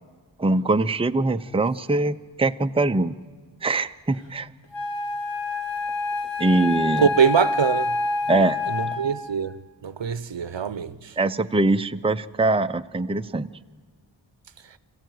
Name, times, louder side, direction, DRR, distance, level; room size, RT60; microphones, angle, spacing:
voice 1, 0.4-3.1 3.6-4.5 6.4-7.1 8.3-8.6 11.2-13.5, right 2 dB, 10° right, 0.6 m, -22 dB
Wind instrument woodwind instrument, 4.7-9.3, left 3 dB, 75° left, 2.5 m, -27 dB
voice 2, 7.0-7.9 8.7-9.6 9.8-10.9, right 7 dB, 70° right, 0.8 m, -23 dB
25.0 x 15.5 x 9.3 m
wide cardioid pair, 50°, 46 cm